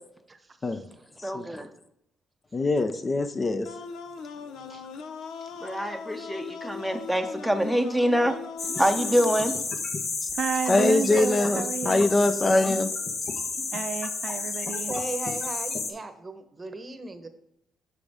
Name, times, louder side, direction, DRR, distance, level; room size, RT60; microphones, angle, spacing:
voice 1, 0.7-1.1 1.4-1.7 4.7-4.8 14.9-17.3, right 2 dB, 30° right, 9 dB, 0.9 m, -37 dB
voice 2, 1.2-1.7 5.6-8.4 8.8-9.6, equal, ahead, 6 dB, 0.7 m, -25 dB
voice 3, 2.5-3.7 4.5-4.6 10.7-12.9, left 2 dB, 30° left, 10 dB, 0.5 m, -23 dB
sound 1, 3.7-9.7, left 6 dB, 80° left, 0.6 m, -40 dB
sound 2, 8.6-15.9, left 4 dB, 55° left, 1.0 m, -31 dB
voice 4, 10.3-12.1 12.4-12.7 13.7-15.0, right 7 dB, 60° right, 8 dB, 0.5 m, -31 dB
9.3 x 4.9 x 3.5 m, 0.79 s
cardioid pair, 90°, 0 cm